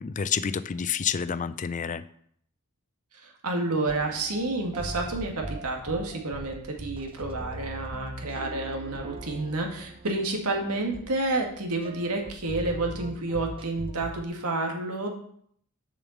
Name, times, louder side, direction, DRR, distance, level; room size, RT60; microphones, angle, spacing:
voice 1, 0.0-2.0, left 7 dB, 35° left, 15 dB, 0.4 m, -29 dB
voice 2, 3.1-15.1, right 2 dB, 85° right, 2 dB, 1.9 m, -30 dB
sound 1, 3.9-14.2, right 1 dB, 25° right, 0.7 m, -40 dB
7.1 x 5.4 x 7.1 m, 0.65 s
head